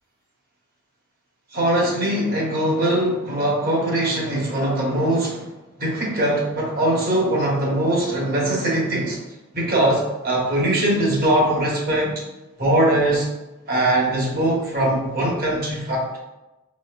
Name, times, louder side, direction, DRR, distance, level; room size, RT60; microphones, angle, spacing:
voice 1, 1.5-5.5 5.8-9.2 9.5-12.2 12.6-13.3 13.7-16.2, right 1 dB, 45° right, -3 dB, 1.0 m, -21 dB
4.2 x 3.2 x 2.3 m, 1.0 s
head